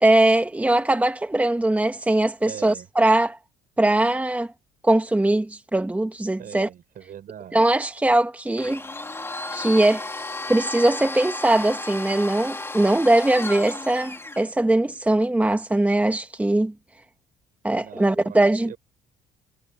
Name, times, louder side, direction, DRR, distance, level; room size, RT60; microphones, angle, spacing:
voice 1, 0.0-3.4 3.8-4.5 4.8-6.7 7.5-8.8 9.5-10.1 10.5-16.7 17.6-18.7, right 1 dB, 10° right, 1.7 m, -21 dB
voice 2, 2.4-2.9 6.4-7.7 17.7-18.4 18.6-18.8, right 10 dB, 55° right, 6.6 m, -41 dB
Domestic sounds home sounds, 8.6-14.5, left 2 dB, 15° left, 2.9 m, -33 dB
cardioid pair, 110°, 17 cm